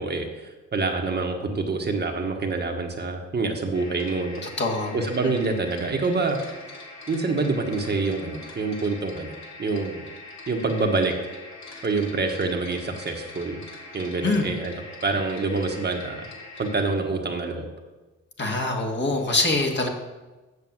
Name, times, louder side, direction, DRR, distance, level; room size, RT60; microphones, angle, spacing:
voice 1, 0.0-4.4 4.9-6.4 7.1-9.3 9.6-10.0 10.5-11.1 11.8-13.6 13.9-16.3 16.6-17.7, right 3 dB, 35° right, 3 dB, 1.5 m, -26 dB
sound 1, 3.7-16.8, left 2 dB, 65° left, 2.9 m, -43 dB
voice 2, 4.6-5.0 14.2-14.5 18.4-19.9, left 2 dB, 35° left, 2 dB, 1.9 m, -24 dB
8.1 x 6.7 x 7.4 m, 1.2 s
cardioid pair, 90°, 30 cm